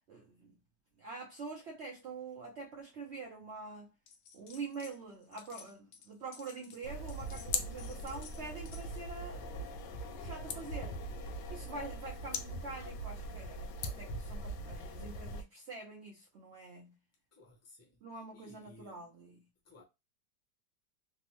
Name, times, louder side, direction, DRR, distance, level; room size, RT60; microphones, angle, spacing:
voice 1, 0.1-0.6 1.0-3.9 4.3-9.9 10.1-11.1 11.5-17.0 18.0-19.5, right 4 dB, 75° right, 0.6 m, -46 dB
sound 1, 4.1-5.0 5.2-9.1, left 6 dB, 65° left, 0.9 m, -55 dB
sound 2, 6.8-15.4, left 1 dB, 85° left, 1.2 m, -40 dB
voice 2, 17.3-18.0 18.3-19.0 19.6-19.8, left 2 dB, 20° left, 0.4 m, -57 dB
3.5 x 2.0 x 2.9 m
omnidirectional pair, 1.8 m